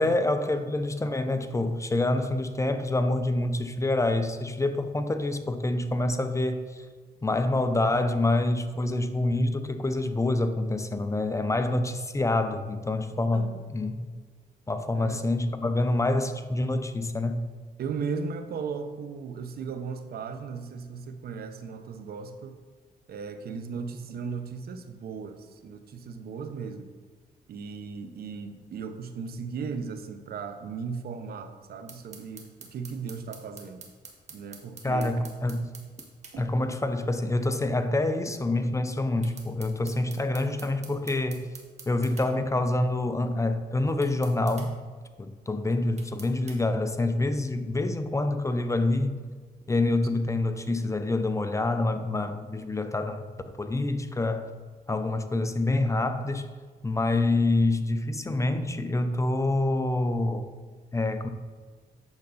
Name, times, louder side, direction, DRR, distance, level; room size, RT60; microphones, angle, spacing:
voice 1, 0.0-6.9 7.2-14.1 14.7-17.5 34.8-35.7 36.4-41.5 41.9-44.8 45.2-49.2 49.7-53.3 53.6-54.5 54.9-56.5 56.8-60.5 60.9-61.3, left 2 dB, 20° left, 9 dB, 0.7 m, -26 dB
voice 2, 17.8-22.6 23.1-26.9 27.5-33.8 34.3-35.3 36.3-36.5, right 5 dB, 70° right, 8 dB, 0.8 m, -37 dB
sound 1, 31.9-36.4 39.2-42.3 44.0-44.7 46.0-46.6, right 4 dB, 45° right, 1.5 m, -46 dB
8.9 x 6.7 x 4.0 m, 1.5 s
cardioid pair, 95°, 16 cm